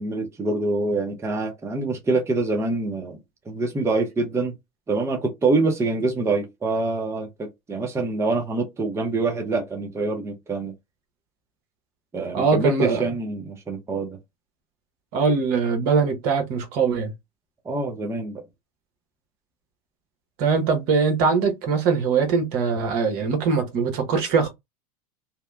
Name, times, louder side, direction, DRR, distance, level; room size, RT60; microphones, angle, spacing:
voice 1, 0.0-3.2 3.5-4.5 4.9-10.7 12.1-14.2 17.7-18.4, right 3 dB, 15° right, 0.6 m, -25 dB
voice 2, 12.3-13.1 15.1-17.1 20.4-24.5, right 5 dB, 55° right, 1.0 m, -22 dB
2.7 x 2.1 x 2.3 m
hypercardioid pair, 95°, 19 cm